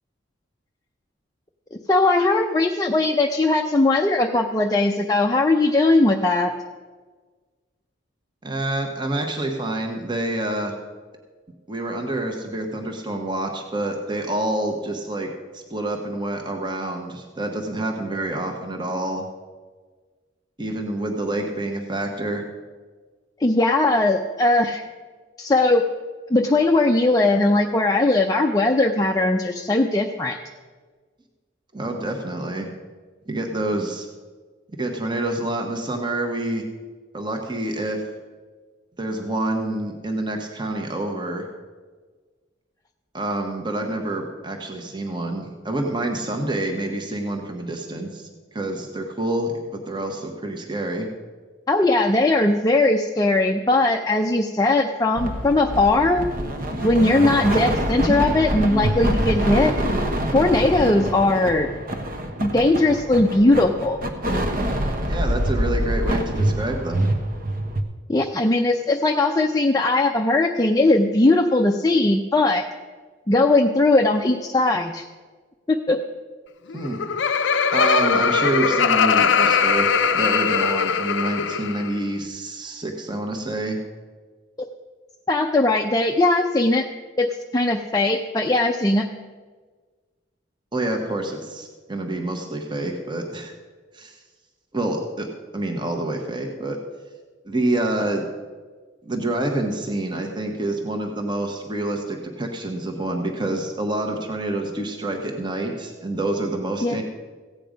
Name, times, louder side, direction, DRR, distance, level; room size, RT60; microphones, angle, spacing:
voice 1, 1.7-6.5 23.4-24.8 25.4-25.8 26.3-30.4 51.7-56.3 56.8-59.7 60.3-61.7 62.4-64.0 68.1-72.6 73.3-75.0 75.7-76.0 85.3-86.9 87.2-89.1 106.8-107.0, left 2 dB, 20° left, 2 dB, 0.5 m, -19 dB
voice 2, 8.4-10.7 11.7-15.3 15.5-19.2 20.6-22.4 31.7-32.7 33.3-34.1 34.8-36.6 37.1-38.0 39.0-41.5 43.1-51.1 65.1-67.1 76.7-77.0 77.7-83.8 90.7-93.5 93.9-94.2 94.7-95.3 95.5-96.8 97.5-98.2 99.0-107.0, right 1 dB, 25° right, 3 dB, 1.2 m, -27 dB
sound 1, 55.2-67.8, right 1 dB, 45° right, 1.1 m, -25 dB
Laughter, 76.7-81.9, left 6 dB, 70° left, 0.5 m, -20 dB
15.5 x 8.9 x 5.1 m, 1.4 s
head